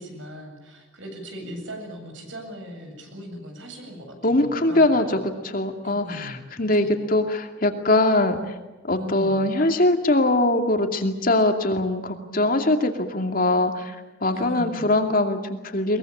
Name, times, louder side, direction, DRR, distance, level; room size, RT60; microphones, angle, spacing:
voice 1, 0.0-5.2 5.8-7.1 9.0-9.5 14.3-15.0, equal, 80° right, 4 dB, 7.9 m, -39 dB
voice 2, 4.2-8.4 8.9-14.0 14.2-16.0, left 2 dB, 45° left, 5 dB, 2.5 m, -22 dB
22.5 x 22.0 x 8.7 m, 1.1 s
head